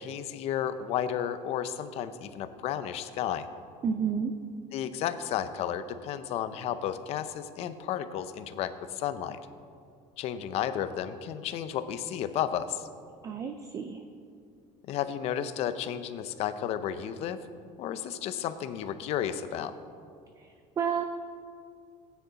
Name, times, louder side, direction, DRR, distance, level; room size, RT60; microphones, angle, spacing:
voice 1, 0.0-3.5 4.7-9.4 10.2-12.9 14.8-17.4 17.8-19.7, left 10 dB, 45° left, 11 dB, 0.6 m, -32 dB
voice 2, 3.8-4.3 13.2-14.0 20.4-21.0, right 7 dB, 25° right, 7 dB, 0.4 m, -31 dB
17.5 x 9.4 x 4.1 m, 2.3 s
cardioid pair, 175°, 14 cm